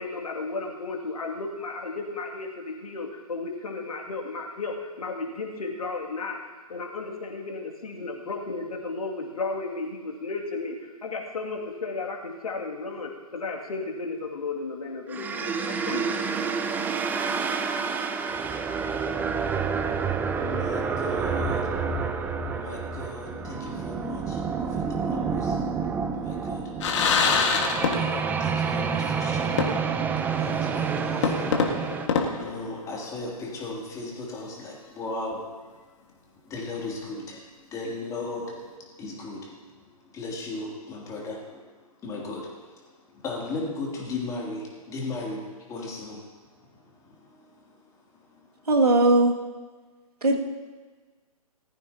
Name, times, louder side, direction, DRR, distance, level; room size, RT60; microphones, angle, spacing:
voice 1, 0.0-6.4 6.7-16.5, left 3 dB, 65° left, 0 dB, 2.5 m, -34 dB
sound 1, 15.1-32.1, right 5 dB, 10° right, 0.6 m, -28 dB
voice 2, 20.3-21.7 22.5-25.6 26.1-26.7 27.5-29.8 30.4-31.6 32.4-35.7 36.1-36.2 36.4-48.7, left 2 dB, 15° left, -3 dB, 3.0 m, -37 dB
sound 2, 26.8-28.4 28.7-28.8 29.6-30.1 30.5-30.6 31.2-33.2, left 5 dB, 50° left, 1.9 m, -25 dB
voice 3, 48.7-49.3 50.2-50.4, right 2 dB, 80° right, 0 dB, 2.4 m, -19 dB
18.5 x 14.0 x 2.9 m, 1.4 s
figure-of-eight pair, 130°, 20 cm